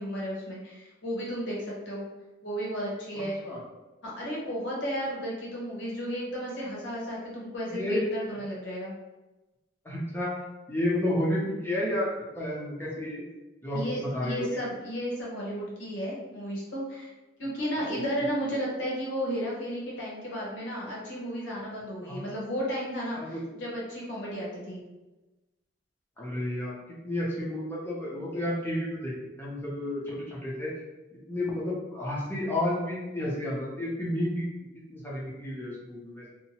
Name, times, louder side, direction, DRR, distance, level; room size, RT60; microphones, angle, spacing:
voice 1, 0.0-2.0 2.4-3.4 4.0-8.9 13.7-17.1 17.4-24.8, equal, 70° left, -4 dB, 0.9 m, -33 dB
voice 2, 3.1-3.6 7.7-8.0 9.8-10.3 10.7-13.2 13.6-14.6 22.0-22.2 23.1-23.4 26.2-26.8 27.0-29.1 29.4-30.7 31.3-34.4 34.9-36.3, left 1 dB, 10° left, -6 dB, 0.6 m, -31 dB
2.7 x 2.1 x 2.8 m, 1.1 s
head